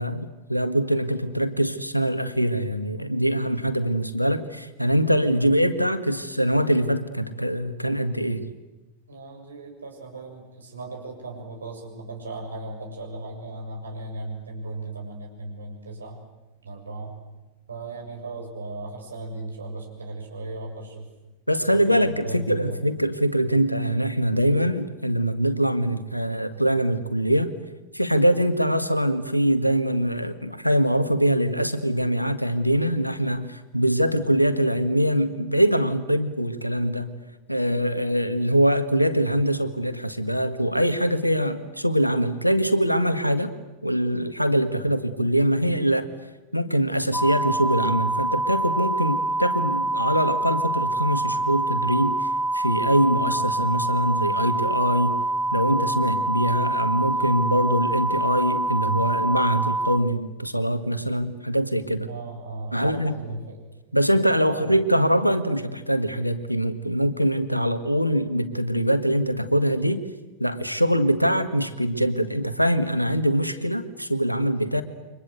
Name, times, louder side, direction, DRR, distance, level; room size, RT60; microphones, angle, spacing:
voice 1, 0.0-8.5 21.5-27.5 27.9-37.1 37.5-43.5 43.8-46.1 46.5-52.3 52.5-55.1 55.5-62.1 62.7-63.1 63.9-70.0 70.4-74.8, equal, 90° left, 11 dB, 1.7 m, -23 dB
voice 2, 9.1-16.2 16.6-17.2 17.7-21.1 21.7-23.0 62.1-63.6 64.5-64.7 74.8-74.9, right 2 dB, 75° right, 1 dB, 7.1 m, -36 dB
sound 1, 47.1-60.0, right 2 dB, 5° left, 1.1 m, -25 dB
29.0 x 24.5 x 8.1 m, 1.1 s
figure-of-eight pair, 90°, 0 cm